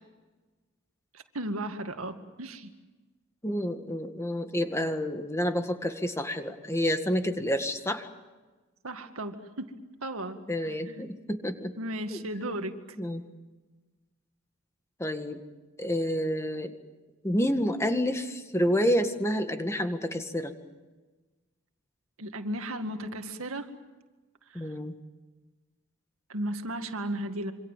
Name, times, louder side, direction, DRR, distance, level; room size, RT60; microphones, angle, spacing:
voice 1, 1.1-2.7 8.8-9.7 10.0-11.1 11.8-12.7 22.2-23.7 24.5-24.6 26.3-27.5, right 1 dB, 80° right, 7 dB, 2.1 m, -35 dB
voice 2, 3.4-8.1 10.5-11.7 12.1-12.2 13.0-13.2 15.0-15.4 15.8-16.7 17.2-20.5 24.5-24.9, equal, 15° left, 6 dB, 1.9 m, -29 dB
27.0 x 26.0 x 7.5 m, 1.2 s
head